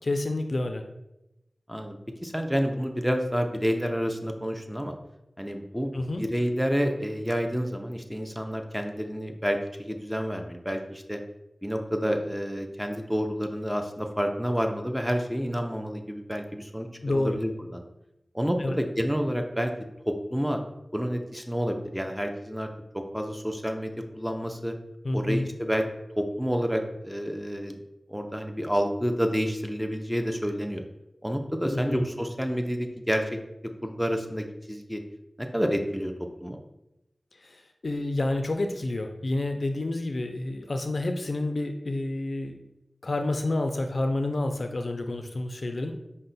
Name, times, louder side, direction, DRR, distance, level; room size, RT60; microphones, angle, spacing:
voice 1, 0.0-0.9 5.9-6.2 17.0-17.4 18.6-18.8 25.0-25.5 31.7-32.0 37.4-42.6 43.0-46.0, left 2 dB, 65° left, 6 dB, 0.3 m, -29 dB
voice 2, 1.7-4.9 5.4-5.9 6.2-11.2 11.6-16.9 17.1-17.8 18.3-19.7 20.1-20.6 20.9-22.7 22.9-24.8 25.1-25.8 26.2-27.8 28.1-30.8 31.2-35.0 35.4-36.6, equal, 5° right, 4 dB, 0.4 m, -29 dB
5.3 x 2.1 x 3.9 m, 0.91 s
wide cardioid pair, 65°, 0 cm